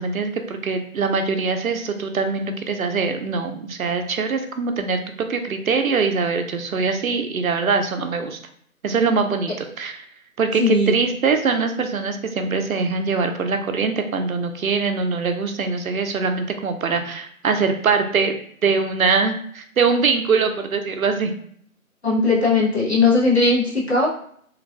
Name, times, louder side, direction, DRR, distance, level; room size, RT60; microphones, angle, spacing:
voice 1, 0.0-8.4 8.8-10.0 10.4-18.3 18.6-21.3, right 5 dB, 75° right, 6 dB, 0.5 m, -22 dB
voice 2, 10.6-11.0 22.0-24.1, left 3 dB, 50° left, -5 dB, 0.8 m, -18 dB
3.1 x 2.3 x 2.3 m, 0.62 s
figure-of-eight pair, 165°, 43 cm